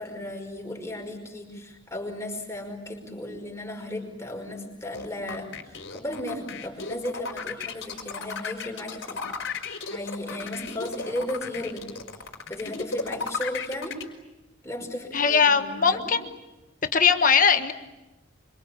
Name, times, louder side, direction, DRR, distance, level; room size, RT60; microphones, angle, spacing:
voice 1, 0.0-9.3 9.9-11.9 12.5-14.0 14.6-16.1, left 1 dB, 15° left, 3 dB, 5.3 m, -35 dB
sound 1, 4.9-14.0, left 4 dB, 70° left, 4.4 m, -34 dB
voice 2, 15.1-16.2 16.9-17.7, left 6 dB, 40° left, 8 dB, 1.4 m, -20 dB
27.0 x 25.0 x 8.6 m, 1.0 s
head